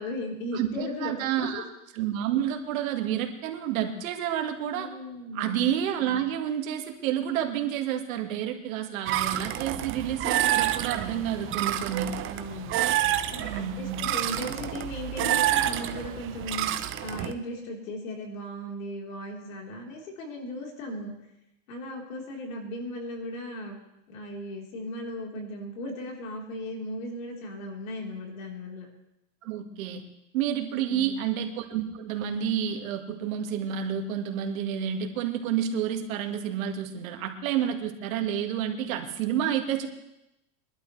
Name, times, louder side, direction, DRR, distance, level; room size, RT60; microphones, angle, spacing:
voice 1, 0.0-1.6 4.7-5.6 12.2-12.8 13.3-21.1 21.7-23.8 24.1-28.9 30.9-31.3, left 1 dB, 80° left, 0 dB, 3.9 m, -37 dB
voice 2, 0.5-1.7 1.9-4.9 5.3-12.1 13.4-14.0 29.4-30.0 30.3-39.9, right 9 dB, 80° right, 4 dB, 1.8 m, -29 dB
sound 1, 9.1-17.3, right 12 dB, 30° right, 0.7 m, -28 dB
23.0 x 12.0 x 3.3 m, 0.88 s
supercardioid pair, 140°, 40 cm